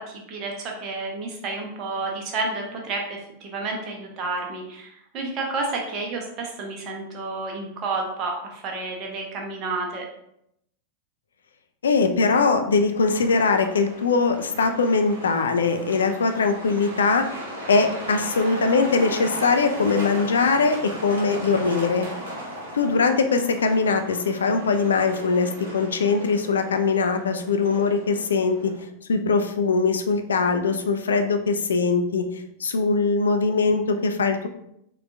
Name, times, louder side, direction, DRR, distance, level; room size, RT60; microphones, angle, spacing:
voice 1, 0.0-10.1, right 3 dB, 35° right, 0 dB, 0.7 m, -30 dB
voice 2, 11.8-17.2 17.7-22.1 22.7-28.7 29.1-32.2 32.6-34.5, left 4 dB, 70° left, 7 dB, 0.3 m, -21 dB
Truck, 13.0-28.8, equal, 65° right, 0.9 m, -37 dB
3.6 x 2.3 x 2.5 m, 0.77 s
figure-of-eight pair, 90°, 0 cm